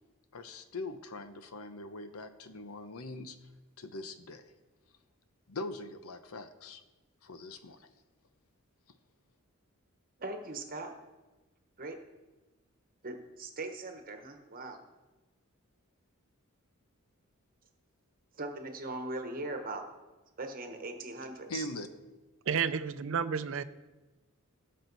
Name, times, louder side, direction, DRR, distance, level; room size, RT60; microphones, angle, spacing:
voice 1, 0.3-3.4 3.8-4.4 5.5-6.8 7.2-7.9 21.5-21.9, left 2 dB, 90° left, 10 dB, 0.9 m, -42 dB
voice 2, 10.2-10.9 11.8-12.0 13.0-14.8 18.4-19.8 20.4-21.7, right 2 dB, 40° right, 5 dB, 1.1 m, -40 dB
voice 3, 22.5-23.6, right 6 dB, 65° right, 13 dB, 0.5 m, -31 dB
17.5 x 6.5 x 4.0 m, 1.1 s
head